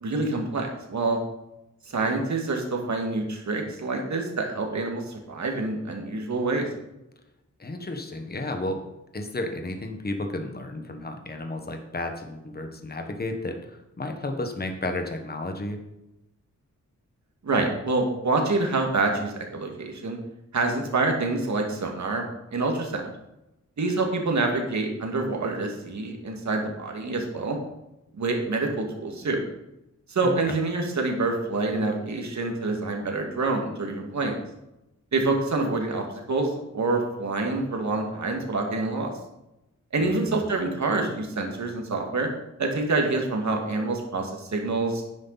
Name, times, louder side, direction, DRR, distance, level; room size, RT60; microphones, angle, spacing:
voice 1, 0.0-1.2 1.9-6.7 17.4-20.2 20.5-23.1 23.8-27.6 28.1-29.4 30.1-34.3 35.1-39.1 39.9-42.3 42.6-45.0, right 3 dB, 65° right, 2 dB, 2.2 m, -27 dB
voice 2, 7.6-8.9 9.1-15.8 30.2-30.5 40.0-40.4, left 2 dB, 30° left, 5 dB, 1.5 m, -32 dB
11.0 x 9.8 x 4.2 m, 0.90 s
wide cardioid pair, 125°, 31 cm